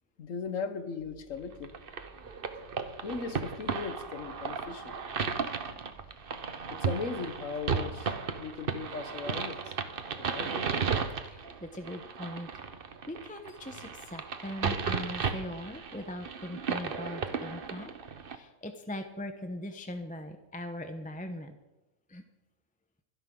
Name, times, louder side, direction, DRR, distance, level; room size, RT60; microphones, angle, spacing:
voice 1, 0.2-1.8 3.0-4.9 6.7-9.7 10.2-10.7, left 5 dB, 70° left, 9 dB, 1.5 m, -38 dB
sound 1, 1.0-8.5, right 4 dB, 25° right, 7.3 m, -59 dB
sound 2, 1.6-18.4, right 5 dB, 45° right, 1.1 m, -35 dB
voice 2, 11.3-12.5 13.1-17.9 18.3-21.6 22.1-22.2, left 1 dB, 5° left, 6 dB, 0.7 m, -40 dB
25.5 x 11.0 x 3.8 m, 1.0 s
omnidirectional pair, 1.4 m